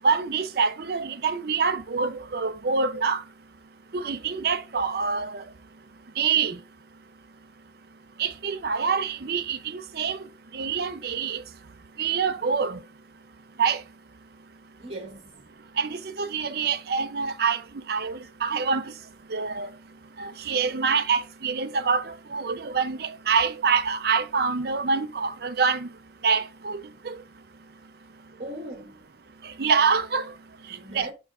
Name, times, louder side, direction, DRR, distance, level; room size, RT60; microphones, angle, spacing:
voice 1, 0.0-3.3 3.9-6.7 8.2-12.9 13.6-13.9 15.6-28.3 29.4-31.1, right 5 dB, 55° right, 0.6 m, -27 dB
voice 2, 14.8-15.5 28.4-29.1 30.7-31.1, right 1 dB, 35° right, 2.4 m, -39 dB
6.8 x 6.2 x 2.5 m
head